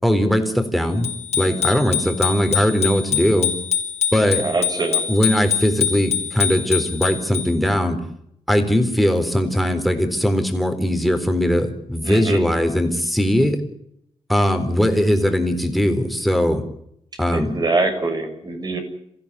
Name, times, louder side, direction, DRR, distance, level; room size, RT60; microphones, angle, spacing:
voice 1, 0.0-3.5 4.1-4.4 5.1-8.0 8.5-13.6 14.3-16.6 17.2-17.5, equal, ahead, 9 dB, 4.1 m, -20 dB
Bicycle bell, 1.0-7.7, left 7 dB, 90° left, 4.8 m, -25 dB
voice 2, 4.4-5.0 12.0-12.4 17.3-18.8, right 3 dB, 40° right, 6 dB, 6.4 m, -23 dB
28.0 x 16.0 x 8.5 m, 0.75 s
cardioid pair, 100°, 11 cm